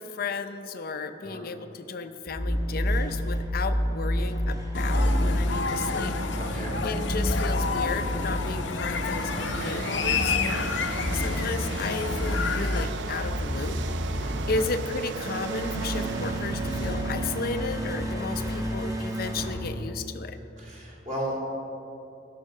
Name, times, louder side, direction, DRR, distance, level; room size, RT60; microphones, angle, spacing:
voice 1, 0.0-6.1 6.8-13.8 14.1-20.4, left 4 dB, 55° left, 9 dB, 0.5 m, -34 dB
sound 1, 2.3-20.4, equal, 20° right, 1.1 m, -30 dB
sound 2, 4.7-12.8, left 4 dB, 85° left, 0.8 m, -29 dB
voice 2, 6.4-6.8 14.2-14.6 20.6-21.5, right 1 dB, 40° right, -4 dB, 2.6 m, -35 dB
sound 3, 8.7-17.9, right 6 dB, 70° right, 0.4 m, -38 dB
12.5 x 5.8 x 6.5 m, 2.8 s
head